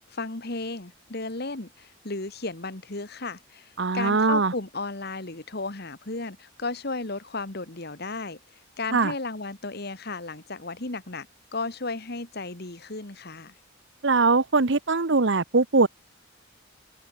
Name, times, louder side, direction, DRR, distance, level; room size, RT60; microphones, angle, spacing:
voice 1, 0.0-11.3 11.5-13.5, left 3 dB, 50° left, 1.8 m, -34 dB
voice 2, 3.8-4.5 8.9-9.1 14.0-15.9, right 3 dB, 60° right, 1.0 m, -21 dB
head